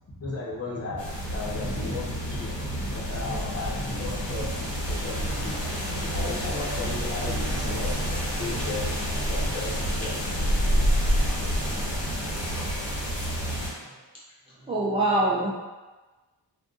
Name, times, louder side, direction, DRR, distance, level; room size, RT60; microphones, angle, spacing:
voice 1, 0.1-1.0 1.3-5.6 6.1-8.9 9.2-10.5 11.2-12.0 13.4-13.6, left 2 dB, 35° left, -7 dB, 0.9 m, -35 dB
sound 1, 1.0-13.7, equal, 70° left, 1.3 m, -28 dB
voice 2, 14.6-15.5, right 2 dB, 15° right, -7 dB, 0.4 m, -24 dB
2.5 x 2.5 x 3.7 m, 1.2 s
wide cardioid pair, 125°, 45 cm